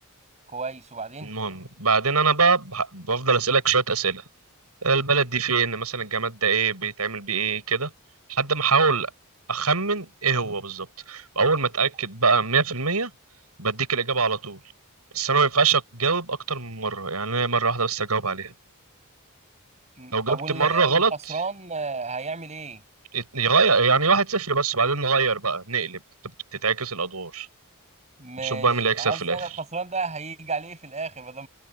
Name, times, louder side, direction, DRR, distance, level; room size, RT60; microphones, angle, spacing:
voice 1, 0.5-1.3 20.0-22.8 28.2-28.7 29.0-31.5, right 4 dB, 30° right, 6.7 m, -32 dB
voice 2, 1.2-4.2 4.8-7.9 8.3-9.1 9.5-13.1 13.6-14.6 15.1-18.5 20.1-21.1 23.1-26.0 26.6-27.5 28.4-29.4, right 4 dB, 85° right, 7.4 m, -23 dB
head